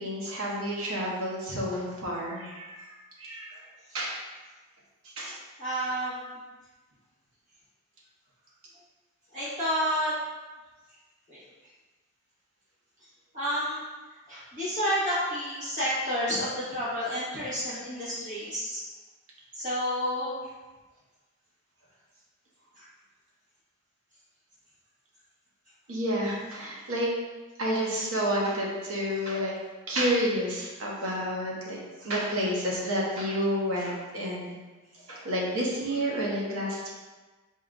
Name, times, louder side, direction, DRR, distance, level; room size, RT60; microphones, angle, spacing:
voice 1, 0.0-2.9 3.2-3.6 3.9-4.2 5.2-5.4 25.9-27.1 27.6-29.5 29.9-34.5 35.1-36.9, equal, 65° right, -4 dB, 0.9 m, -30 dB
voice 2, 5.6-6.2 9.3-10.1 11.3-11.4 13.3-13.8 14.3-18.8 19.5-20.3 22.8-22.9, equal, 35° right, -10 dB, 1.5 m, -30 dB
4.0 x 3.7 x 2.4 m, 1.3 s
head